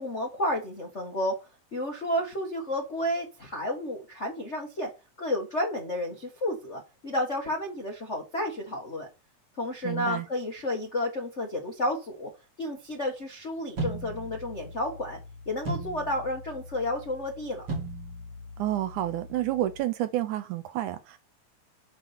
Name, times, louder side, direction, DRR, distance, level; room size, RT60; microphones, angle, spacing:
voice 1, 0.0-1.3 1.7-4.9 5.2-9.1 9.6-12.3 12.6-15.2 15.5-17.7, left 1 dB, 50° left, 0.8 m, -31 dB
voice 2, 9.8-10.3 18.6-21.2, right 14 dB, 75° right, 2.0 m, -29 dB
sound 1, 13.8-19.8, right 2 dB, 45° right, 3.2 m, -38 dB
10.5 x 4.2 x 5.8 m
omnidirectional pair, 3.8 m